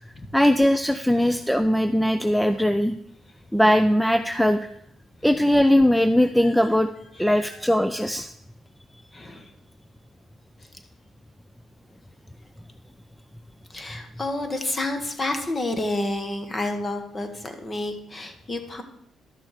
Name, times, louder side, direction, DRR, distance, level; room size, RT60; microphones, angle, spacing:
voice 1, 0.3-2.9 3.5-4.6 5.2-6.9 7.2-8.3, equal, ahead, 10 dB, 0.4 m, -20 dB
voice 2, 7.2-7.6 9.1-9.5 13.7-18.8, left 2 dB, 25° left, 7 dB, 1.5 m, -30 dB
11.5 x 6.1 x 5.0 m, 0.74 s
cardioid pair, 90°, 0 cm